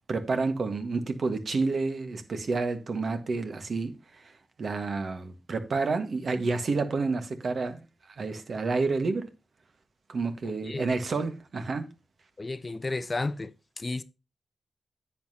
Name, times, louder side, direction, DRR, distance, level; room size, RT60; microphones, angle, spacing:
voice 1, 0.1-3.9 4.6-7.8 8.2-9.3 10.1-11.8, right 3 dB, 60° right, 1.5 m, -29 dB
voice 2, 10.4-10.8 12.4-13.5 13.8-14.0, left 3 dB, 35° left, 0.7 m, -32 dB
10.0 x 7.8 x 2.8 m
cardioid pair, 65°, 0 cm